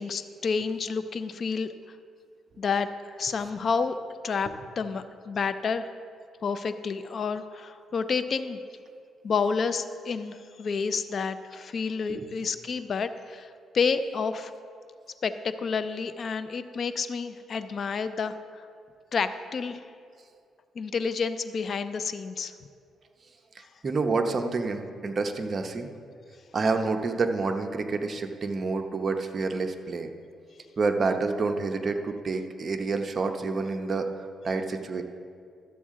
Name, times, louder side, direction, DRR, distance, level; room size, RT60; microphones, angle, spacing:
voice 1, 0.0-1.7 2.6-2.9 3.1-3.9 4.2-5.9 6.4-8.6 9.2-14.5 15.2-18.6 19.1-19.8 20.8-22.5, left 5 dB, 50° left, 11 dB, 0.5 m, -29 dB
voice 2, 23.5-25.9 26.5-30.1 30.8-35.0, right 3 dB, 40° right, 5 dB, 0.8 m, -28 dB
13.5 x 8.1 x 3.7 m, 2.3 s
cardioid pair, 90°, 0 cm